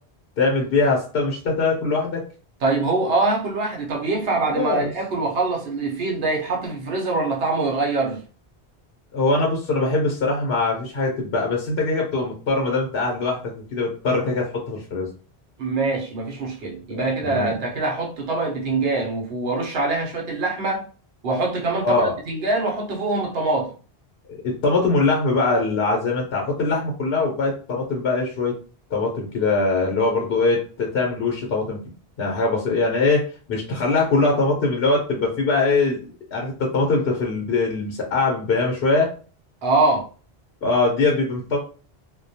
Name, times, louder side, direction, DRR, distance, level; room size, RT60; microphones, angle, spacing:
voice 1, 0.4-2.2 4.5-4.9 9.1-13.4 13.7-15.1 17.2-17.5 21.8-22.1 24.3-28.5 28.9-31.8 32.2-36.0 36.3-39.1 40.6-41.6, left 3 dB, 65° left, 0.8 m, -22 dB
voice 2, 2.6-8.2 15.6-20.8 21.2-23.7 39.6-40.1, right 3 dB, 70° right, 0.9 m, -24 dB
2.3 x 2.1 x 2.7 m
omnidirectional pair, 1.1 m